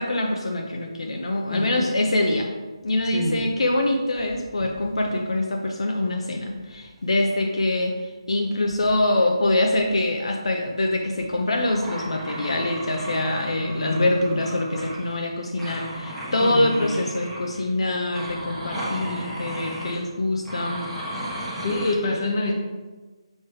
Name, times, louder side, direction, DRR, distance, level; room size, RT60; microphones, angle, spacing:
voice 1, 0.0-2.5 2.8-7.9 8.3-20.8, left 1 dB, 70° left, 2 dB, 0.7 m, -24 dB
voice 2, 1.5-2.0 3.1-3.4 13.4-14.4 16.4-16.9 21.6-22.5, left 2 dB, 40° left, 1 dB, 1.1 m, -27 dB
sound 1, 2.9-3.8 4.0-5.1 6.5-7.0 8.7-8.9 9.5-9.8 10.2-10.3 11.2-15.3 15.6-17.7 18.1-20.0 20.4-21.9, equal, 5° left, 1.0 m, -35 dB
6.6 x 3.1 x 4.7 m, 1.3 s
figure-of-eight pair, 160°, 3 cm